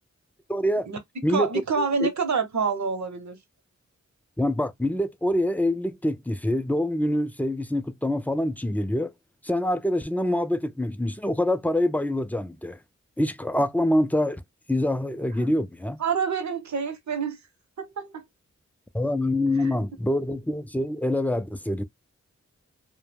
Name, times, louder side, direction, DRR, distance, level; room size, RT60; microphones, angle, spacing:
voice 1, 0.5-0.9 1.2-2.1 4.4-9.1 9.4-12.8 13.2-14.4 14.7-16.0 18.9-21.8, left 1 dB, 5° left, 0.4 m, -25 dB
voice 2, 1.3-3.4 15.4-15.5 16.0-17.4 17.8-18.2, right 5 dB, 70° right, 0.8 m, -27 dB
2.3 x 2.2 x 3.2 m
cardioid pair, 40°, 30 cm